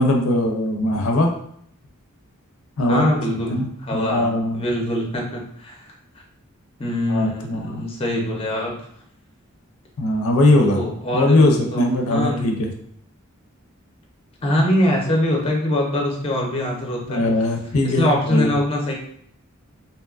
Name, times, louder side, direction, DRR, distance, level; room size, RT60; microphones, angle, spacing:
voice 1, 0.0-1.3 2.8-3.1 3.5-4.6 7.1-7.8 10.0-10.8 11.1-12.7 17.1-18.5, left 1 dB, 80° left, 2 dB, 0.4 m, -20 dB
voice 2, 2.8-3.6 3.8-4.3 4.5-5.9 6.8-8.7 10.6-12.5 14.4-17.2 17.8-18.9, left 1 dB, 25° left, -1 dB, 0.5 m, -23 dB
2.7 x 2.3 x 2.3 m, 0.66 s
head